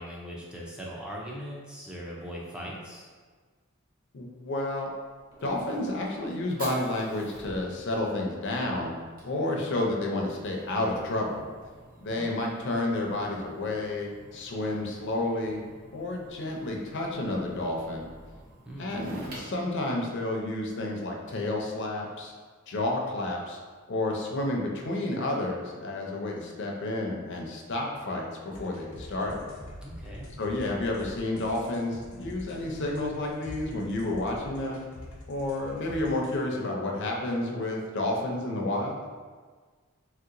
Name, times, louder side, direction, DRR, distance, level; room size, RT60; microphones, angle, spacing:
voice 1, 0.0-3.1 12.1-12.3 18.7-19.1 29.8-30.3, equal, 5° right, -4 dB, 0.4 m, -40 dB
voice 2, 4.1-4.9 5.4-8.9 9.2-11.4 12.0-15.6 15.9-18.1 18.8-22.3 22.7-23.6 23.9-29.4 30.4-34.8 35.3-39.0, left 2 dB, 55° left, 0 dB, 0.5 m, -30 dB
Fire, 4.5-20.7, right 1 dB, 40° right, 0.6 m, -49 dB
sound 1, 28.5-36.4, left 1 dB, 90° left, 0.7 m, -45 dB
3.2 x 2.8 x 2.5 m, 1.5 s
head